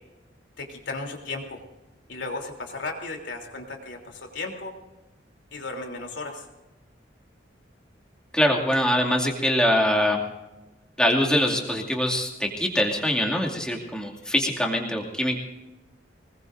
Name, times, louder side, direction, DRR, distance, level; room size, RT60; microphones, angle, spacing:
voice 1, 0.6-1.6 2.1-4.8 5.5-6.4, left 3 dB, 75° left, 2 dB, 3.3 m, -35 dB
voice 2, 8.3-10.2 11.0-15.4, equal, 5° left, -1 dB, 2.4 m, -23 dB
24.5 x 20.5 x 2.6 m, 1.1 s
head